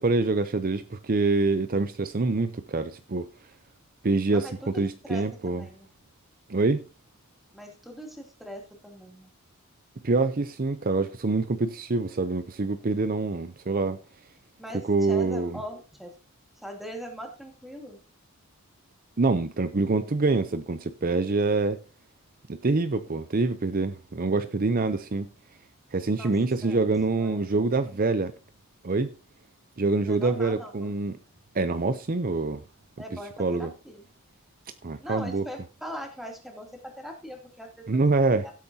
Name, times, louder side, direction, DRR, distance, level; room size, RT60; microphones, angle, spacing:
voice 1, 0.0-3.3 4.0-4.5 4.7-5.6 6.5-6.8 10.0-14.0 14.9-15.6 19.2-21.8 22.5-25.3 25.9-28.3 28.8-29.1 29.8-31.1 31.5-32.6 33.4-33.7 34.8-35.4 37.9-38.5, right 3 dB, 40° right, 0.6 m, -25 dB
voice 2, 4.3-5.9 7.5-9.3 14.6-16.1 16.6-18.0 26.1-26.3 26.6-26.8 27.1-27.5 27.9-28.2 30.0-30.9 33.0-34.1 35.0-38.0 38.3-38.5, equal, ahead, 2.7 m, -41 dB
16.5 x 8.4 x 2.8 m
head